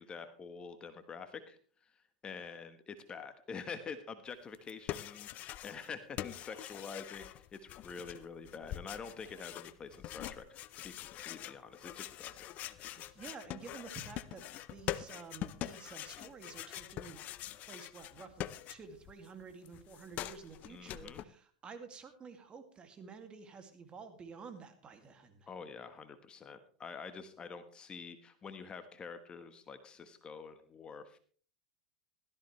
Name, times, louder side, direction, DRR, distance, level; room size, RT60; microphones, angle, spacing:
voice 1, 0.0-1.9 2.2-12.5 12.7-13.0 20.7-21.2 25.5-31.2, left 5 dB, 25° left, 9 dB, 1.3 m, -47 dB
sound 1, 4.5-5.9 6.2-19.1 19.4-21.2, left 13 dB, 45° left, 0.7 m, -44 dB
voice 2, 13.0-17.2 17.7-25.5, right 5 dB, 25° right, 7 dB, 2.4 m, -51 dB
16.5 x 13.5 x 3.2 m, 0.44 s
hypercardioid pair, 105°, 4 cm